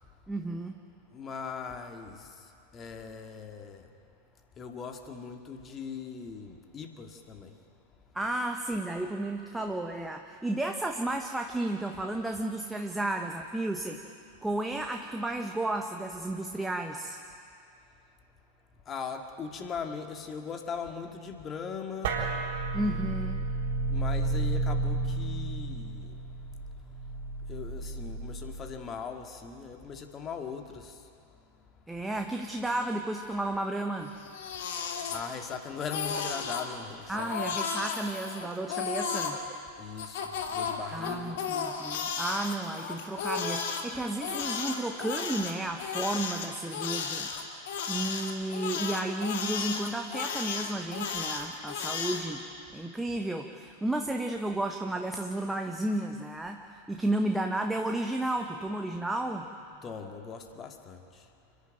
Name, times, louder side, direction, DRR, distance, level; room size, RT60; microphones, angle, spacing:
voice 1, 0.3-0.8 8.1-14.0 14.4-17.2 22.7-23.4 31.9-34.1 37.1-39.4 40.9-47.3 47.9-52.4 52.7-59.5, right 1 dB, 5° right, 4 dB, 1.2 m, -32 dB
voice 2, 1.1-2.5 2.7-3.9 4.6-7.6 18.9-22.2 23.9-26.2 27.5-31.0 35.1-37.3 39.8-41.4 59.8-61.2, left 6 dB, 25° left, 4 dB, 2.0 m, -40 dB
sound 1, 22.0-28.8, right 2 dB, 50° right, 3.8 m, -32 dB
Crying sobbing, 34.1-35.5 35.8-36.7 37.1-39.4 40.0-43.8 44.2-52.2, left 6 dB, 55° left, 2.3 m, -34 dB
29.5 x 11.0 x 9.1 m, 2.4 s
figure-of-eight pair, 90°, 0 cm